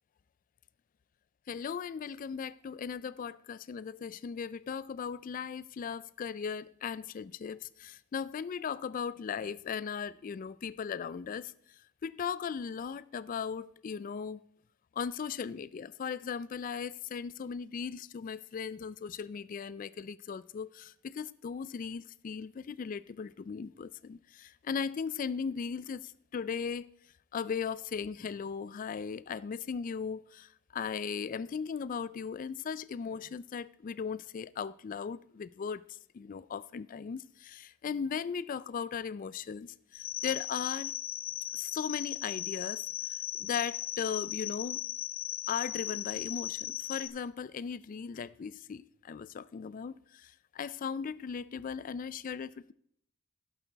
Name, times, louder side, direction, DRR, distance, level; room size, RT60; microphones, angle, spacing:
voice 1, 1.5-11.5 12.0-14.4 15.0-26.9 27.3-41.0 41.5-42.8 43.1-44.8 45.5-52.7, left 6 dB, 40° left, 0.3 m, -37 dB
sound 1, 39.9-47.1, left 14 dB, 75° left, 0.7 m, -37 dB
11.5 x 8.0 x 4.6 m
head